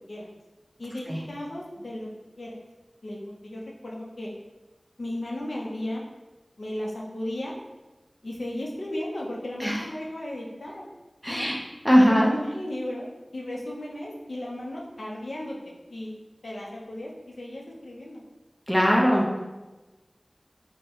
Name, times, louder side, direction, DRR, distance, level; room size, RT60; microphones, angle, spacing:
voice 1, 0.8-2.1 2.4-2.6 3.0-4.3 5.0-6.0 6.6-7.6 8.2-10.8 11.3-11.5 11.9-13.1 13.3-16.1 16.4-18.2, left 1 dB, 80° left, -2 dB, 0.7 m, -35 dB
voice 2, 11.2-11.6 11.8-12.3 18.7-19.4, equal, 5° left, -2 dB, 0.8 m, -20 dB
4.6 x 2.2 x 2.9 m, 1.1 s
wide cardioid pair, 55°, 0 cm